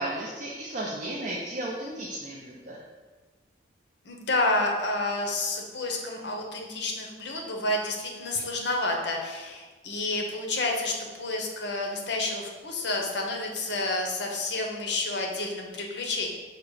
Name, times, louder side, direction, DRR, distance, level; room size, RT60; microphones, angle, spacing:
voice 1, 0.0-2.8, right 1 dB, 40° right, -3 dB, 0.5 m, -34 dB
voice 2, 4.0-16.3, left 2 dB, 70° left, 1 dB, 0.7 m, -29 dB
4.9 x 2.2 x 4.7 m, 1.3 s
head